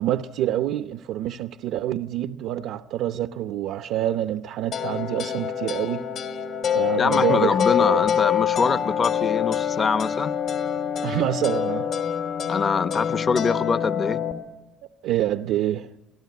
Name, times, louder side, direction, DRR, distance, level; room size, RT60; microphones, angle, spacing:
voice 1, 0.0-6.1 6.7-8.1 11.0-12.0 15.0-15.9, right 12 dB, 85° right, 0.7 m, -27 dB
sound 1, 4.7-14.3, left 9 dB, 60° left, 3.1 m, -25 dB
voice 2, 7.0-10.3 12.5-14.2, left 5 dB, 30° left, 0.9 m, -24 dB
28.0 x 18.0 x 9.5 m
cardioid pair, 145°, 0 cm